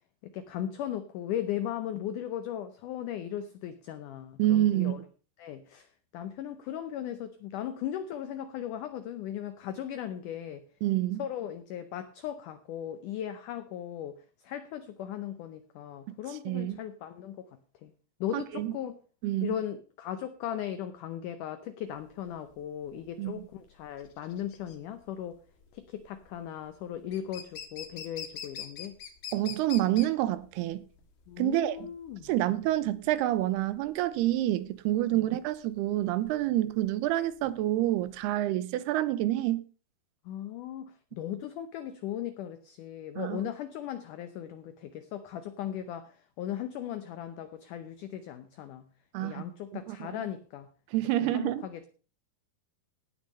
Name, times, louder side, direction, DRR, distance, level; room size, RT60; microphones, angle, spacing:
voice 1, 0.2-5.0 5.4-5.9 6.1-10.6 11.2-17.5 17.8-17.9 18.2-19.0 19.4-25.4 25.7-29.0 31.3-32.3 35.1-35.3 40.3-48.8 49.2-50.7 51.2-51.9, left 10 dB, 85° left, 1.8 m, -37 dB
voice 2, 4.4-5.0 10.8-11.2 16.5-16.8 18.3-18.7 19.2-19.5 23.2-23.4 29.3-30.8 31.4-31.9 32.2-39.7 43.2-43.4 49.1-49.4 49.9-50.2 50.9-51.7, right 14 dB, 85° right, 2.8 m, -28 dB
sound 1, 22.0-38.3, left 8 dB, 65° left, 1.2 m, -45 dB
17.5 x 6.3 x 5.4 m
omnidirectional pair, 4.6 m